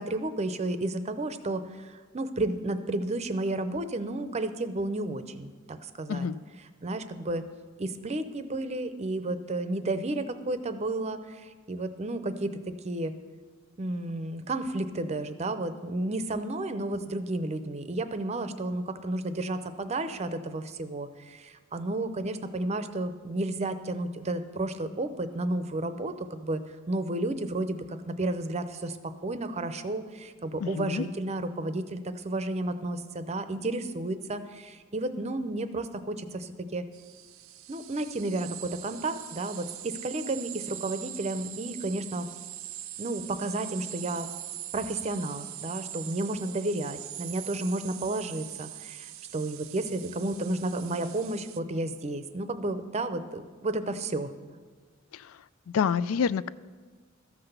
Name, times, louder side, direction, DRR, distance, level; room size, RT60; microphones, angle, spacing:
voice 1, 0.0-6.3 6.8-7.5 7.8-12.6 12.8-13.1 13.8-26.6 26.9-36.8 37.7-42.3 43.0-44.3 44.7-54.3, right 2 dB, 35° right, 10 dB, 0.6 m, -32 dB
voice 2, 30.6-31.0 55.1-55.4 55.7-56.5, left 6 dB, 85° left, 17 dB, 0.3 m, -28 dB
sound 1, 36.9-51.6, right 13 dB, 80° right, 0.5 m, -42 dB
13.5 x 5.9 x 6.8 m, 1.5 s
head